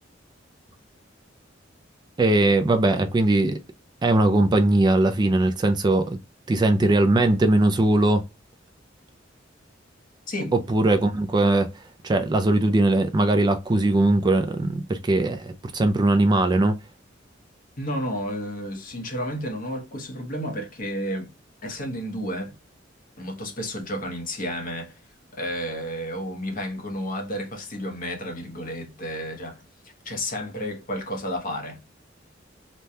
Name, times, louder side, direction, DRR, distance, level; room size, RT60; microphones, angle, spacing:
voice 1, 2.2-3.6 4.0-6.2 6.5-8.2 10.5-11.7 12.0-16.8, right 2 dB, 20° right, 0.3 m, -20 dB
voice 2, 17.8-21.3 21.6-22.5 23.2-25.0 25.3-31.8, equal, 45° left, 0.9 m, -31 dB
3.2 x 2.2 x 2.7 m
head